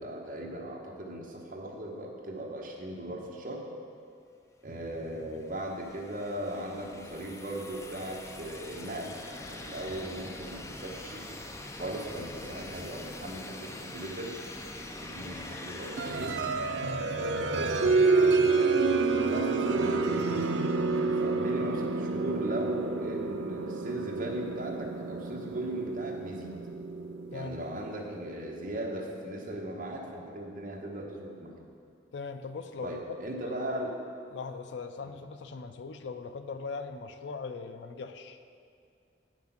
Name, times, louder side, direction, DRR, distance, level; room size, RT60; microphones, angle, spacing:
voice 1, 0.0-3.6 4.6-11.3 11.7-14.4 14.9-16.4 17.1-18.8 19.2-20.3 20.9-26.5 27.3-31.6 32.8-33.9 35.0-35.1, right 1 dB, 45° right, -1 dB, 1.1 m, -38 dB
sound 1, 4.9-18.7, left 2 dB, 15° left, 0.4 m, -44 dB
sound 2, 16.0-28.5, right 3 dB, 70° right, 0.5 m, -28 dB
voice 2, 16.8-17.1 27.3-27.6 32.1-33.2 33.4-33.6 34.3-38.4, left 4 dB, 70° left, 9 dB, 0.5 m, -40 dB
8.1 x 6.0 x 5.9 m, 2.4 s
head